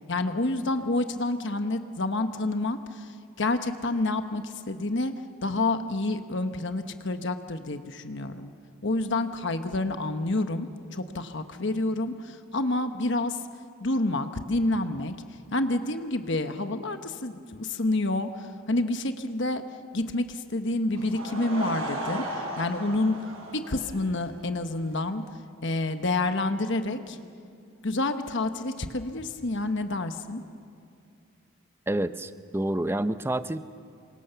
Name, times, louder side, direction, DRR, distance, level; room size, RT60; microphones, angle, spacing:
voice 1, 0.1-5.1 5.4-8.5 8.8-13.4 13.8-15.1 15.5-19.6 19.9-23.2 23.5-25.2 25.6-27.2 27.8-30.4, left 2 dB, 55° left, 8 dB, 1.1 m, -28 dB
Laughter / Crowd, 20.9-24.5, right 1 dB, 75° right, 6.0 m, -36 dB
voice 2, 31.9-33.6, right 1 dB, 10° right, 12 dB, 0.6 m, -28 dB
28.5 x 25.0 x 6.9 m, 2.3 s
head